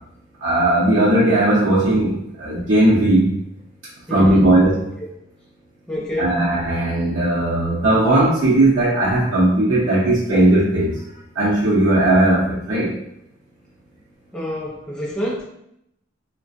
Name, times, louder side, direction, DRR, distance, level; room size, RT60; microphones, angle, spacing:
voice 1, 0.4-3.3 4.1-4.8 6.2-11.0 11.3-12.9, right 1 dB, 80° right, -8 dB, 0.6 m, -17 dB
voice 2, 4.1-4.6 5.0-5.1 5.9-6.4 14.3-15.4, equal, 5° left, -4 dB, 0.5 m, -27 dB
2.4 x 2.2 x 2.5 m, 0.79 s
head